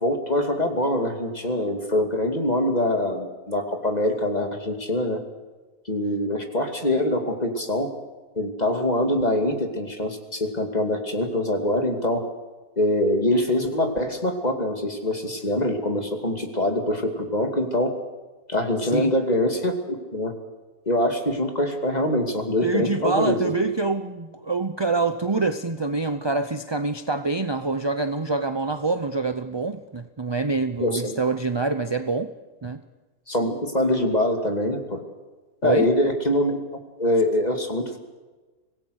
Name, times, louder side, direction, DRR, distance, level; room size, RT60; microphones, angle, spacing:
voice 1, 0.0-5.2 5.9-7.9 8.4-12.2 12.8-17.9 18.5-20.3 20.9-23.6 30.8-31.1 33.3-35.0 35.6-36.6 37.0-38.0, left 1 dB, 25° left, 4 dB, 2.6 m, -24 dB
voice 2, 22.6-32.3 32.6-32.8 35.6-35.9, right 3 dB, 25° right, 10 dB, 0.6 m, -25 dB
25.5 x 18.0 x 6.6 m, 1.2 s
omnidirectional pair, 1.6 m